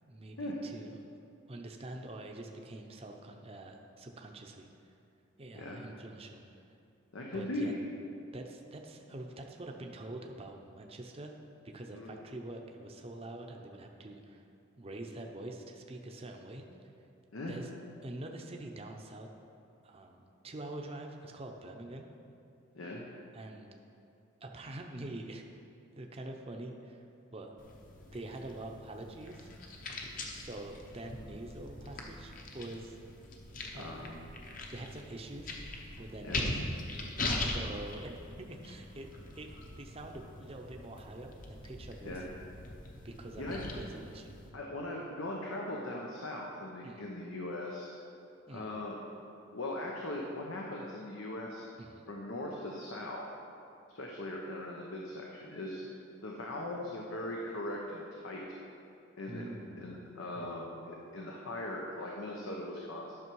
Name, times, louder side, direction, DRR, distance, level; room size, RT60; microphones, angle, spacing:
voice 1, 0.0-1.0 1.5-4.7 5.4-6.4 7.3-7.7 8.3-11.4 11.7-14.4 14.8-16.6 17.5-17.7 18.0-19.3 19.8-22.1 23.3-23.7 24.4-25.4 25.9-27.0 27.3-27.5 28.1-29.5 30.3-33.0 33.7-34.1 34.7-35.5 36.0-36.6 37.5-39.1 39.4-39.5 39.8-42.2 43.0-44.4 46.8-47.1 48.5-48.8 51.8-52.1 59.3-60.7, right 2 dB, 30° right, 2 dB, 0.6 m, -45 dB
voice 2, 5.5-5.9 7.1-7.8 11.9-12.2 17.3-17.6 22.7-23.0 33.7-34.3 36.2-36.4 37.2-37.4 42.0-42.3 43.4-43.7 44.5-47.9 48.5-49.0 49.5-51.6 52.1-53.3 53.9-55.8 56.2-58.4 59.2-59.5 59.8-63.1, left 1 dB, 85° left, -1 dB, 0.9 m, -39 dB
sound 1, 27.6-44.5, left 2 dB, 40° left, 0.9 m, -41 dB
11.0 x 6.2 x 4.6 m, 2.6 s
head